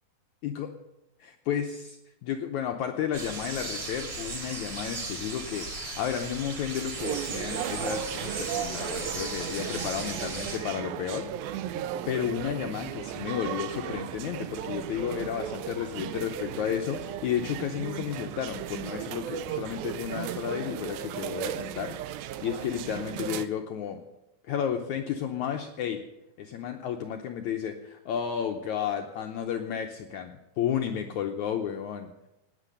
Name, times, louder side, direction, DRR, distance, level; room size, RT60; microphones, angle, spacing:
voice 1, 1.4-11.3 12.1-22.0 22.4-24.0 24.4-26.0 26.4-32.1, left 9 dB, 85° left, 4 dB, 1.7 m, -32 dB
sound 1, 3.1-10.6, right 3 dB, 30° right, 3.3 m, -37 dB
sound 2, 7.0-23.5, right 11 dB, 80° right, 2.3 m, -36 dB
17.5 x 9.2 x 6.6 m, 0.96 s
omnidirectional pair, 4.4 m